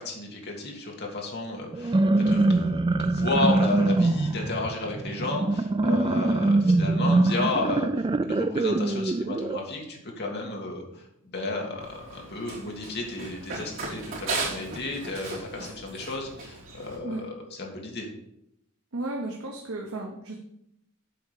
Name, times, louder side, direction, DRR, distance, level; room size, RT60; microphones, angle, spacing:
voice 1, 0.0-11.0 11.3-17.3 17.6-18.1, left 2 dB, 50° left, 0 dB, 2.0 m, -33 dB
sound 1, 1.7-9.6, right 2 dB, 20° right, 0.3 m, -23 dB
Run, 11.8-17.0, right 3 dB, 60° right, 3.2 m, -36 dB
voice 2, 18.9-20.4, right 2 dB, 75° right, 0 dB, 1.1 m, -34 dB
7.8 x 4.9 x 6.7 m, 0.80 s
head